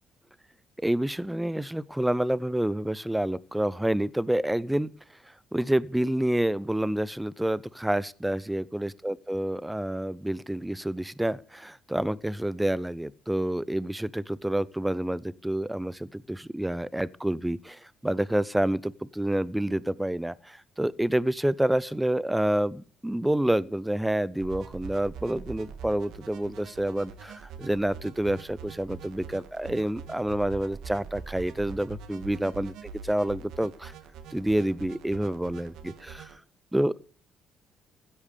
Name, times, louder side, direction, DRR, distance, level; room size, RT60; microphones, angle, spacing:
voice 1, 0.8-4.9 5.5-32.7 33.0-33.9 34.3-36.3 36.7-37.0, right 1 dB, 5° right, 0.6 m, -28 dB
sound 1, 24.4-36.4, right 6 dB, 75° right, 1.9 m, -44 dB
16.0 x 8.6 x 6.8 m
cardioid pair, 120°, 0 cm